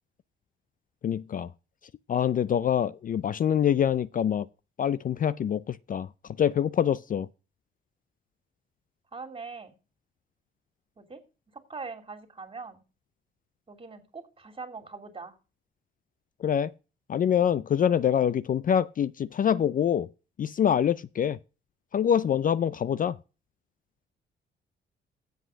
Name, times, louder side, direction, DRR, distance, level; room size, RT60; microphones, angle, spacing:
voice 1, 1.0-1.5 2.1-4.5 4.8-6.1 6.4-7.3 16.4-16.7 17.1-20.1 20.4-21.4 21.9-23.2, left 9 dB, 45° left, 0.5 m, -25 dB
voice 2, 9.1-9.7 11.0-11.2 11.5-12.8 13.7-15.3, right 4 dB, 25° right, 2.7 m, -42 dB
8.0 x 7.4 x 6.3 m
cardioid pair, 90°, 20 cm